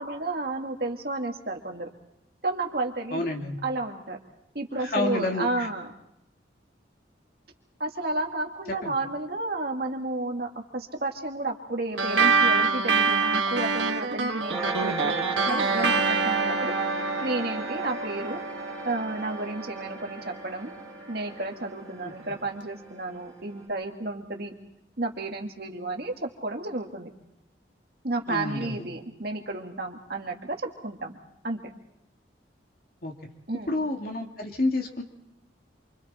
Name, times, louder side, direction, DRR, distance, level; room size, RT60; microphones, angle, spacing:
voice 1, 0.0-1.9 2.4-3.3 3.6-4.2 4.5-5.9 7.8-16.7 17.2-18.4 18.8-20.7 21.1-24.5 25.0-27.1 28.0-31.1 31.4-31.7 33.5-33.7, right 2 dB, 55° right, 2 dB, 2.2 m, -32 dB
voice 2, 3.1-3.6 4.9-5.7 8.8-8.9 28.3-28.8 33.0-33.1 33.7-35.0, left 2 dB, 50° left, 2 dB, 2.6 m, -29 dB
sound 1, 12.0-20.8, right 4 dB, 85° right, 1.7 m, -26 dB
sound 2, 14.5-23.5, right 3 dB, 5° left, 6.8 m, -36 dB
28.0 x 25.0 x 4.4 m, 0.79 s
head